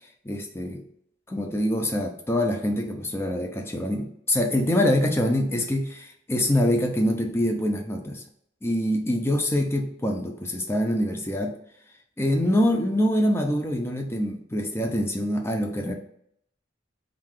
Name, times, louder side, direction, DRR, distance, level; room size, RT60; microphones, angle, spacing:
voice 1, 0.2-0.8 1.3-8.2 8.6-11.6 12.2-15.9, left 1 dB, 15° left, 3 dB, 0.5 m, -25 dB
3.7 x 2.4 x 4.6 m, 0.70 s
head